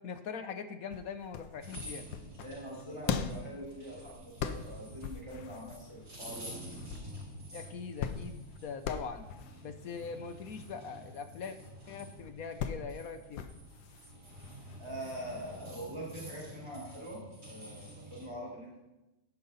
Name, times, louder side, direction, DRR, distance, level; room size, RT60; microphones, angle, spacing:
voice 1, 0.0-2.0 7.5-9.3 9.6-11.6 11.9-13.4, left 6 dB, 60° left, 9 dB, 1.0 m, -42 dB
sound 1, 0.9-15.6, left 7 dB, 80° left, 1.4 m, -42 dB
sound 2, 1.6-18.3, equal, 50° right, 4.9 m, -49 dB
voice 2, 2.4-6.5 14.8-18.8, right 1 dB, 15° right, -6 dB, 3.9 m, -43 dB
11.0 x 10.5 x 4.1 m, 1.0 s
omnidirectional pair, 2.0 m